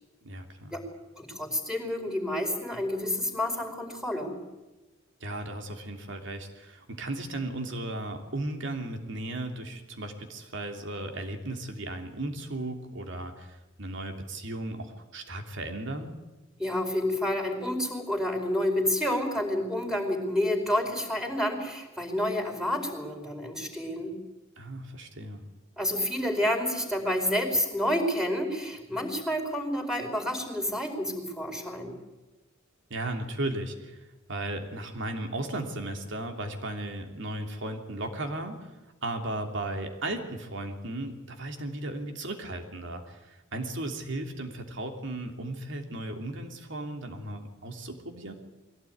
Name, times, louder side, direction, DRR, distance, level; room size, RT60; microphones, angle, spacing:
voice 1, 0.2-0.7 5.2-16.1 24.6-25.4 32.9-34.0 34.3-38.6 39.0-48.3, right 1 dB, 65° right, 5 dB, 3.1 m, -36 dB
voice 2, 1.2-4.4 16.6-24.1 25.8-32.0, left 1 dB, 5° right, 3 dB, 4.7 m, -29 dB
22.5 x 17.0 x 9.5 m, 1.1 s
head